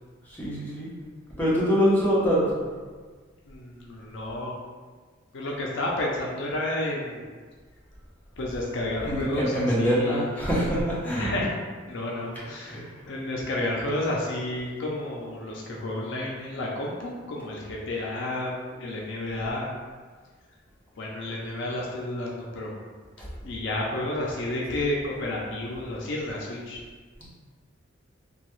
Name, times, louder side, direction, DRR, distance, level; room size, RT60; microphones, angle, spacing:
voice 1, 0.3-0.9 1.4-2.6 9.0-11.3 12.7-12.9 23.2-23.3, equal, 10° left, -9 dB, 0.8 m, -24 dB
voice 2, 3.4-4.6 5.3-7.2 8.4-10.3 11.0-11.5 11.9-12.8 13.1-19.7 21.0-22.7 23.4-26.8, left 1 dB, 65° left, -2 dB, 0.5 m, -31 dB
2.8 x 2.3 x 3.0 m, 1.5 s
head